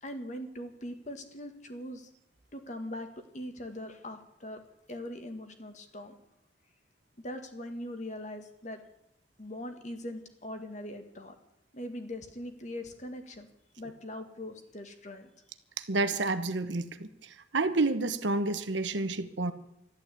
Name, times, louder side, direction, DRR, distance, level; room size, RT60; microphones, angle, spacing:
voice 1, 0.0-2.1 2.5-4.6 4.9-6.1 7.2-8.8 9.4-11.4 11.7-13.5 13.8-15.3, left 1 dB, 40° left, 6 dB, 1.9 m, -41 dB
voice 2, 15.9-17.1 17.5-19.5, right 3 dB, 80° right, 10 dB, 1.2 m, -29 dB
13.0 x 12.0 x 8.5 m, 0.80 s
head